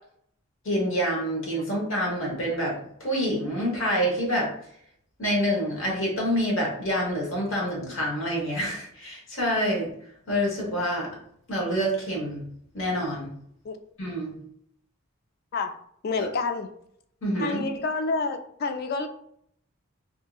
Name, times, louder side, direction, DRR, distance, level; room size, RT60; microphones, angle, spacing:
voice 1, 0.6-4.5 5.2-9.9 10.3-11.1 11.5-12.4 12.7-13.3 14.0-14.3 17.2-17.6, equal, 65° left, -2 dB, 1.1 m, -27 dB
voice 2, 16.0-16.7 17.4-19.1, left 4 dB, 45° left, 7 dB, 0.3 m, -28 dB
2.7 x 2.6 x 2.3 m, 0.69 s
head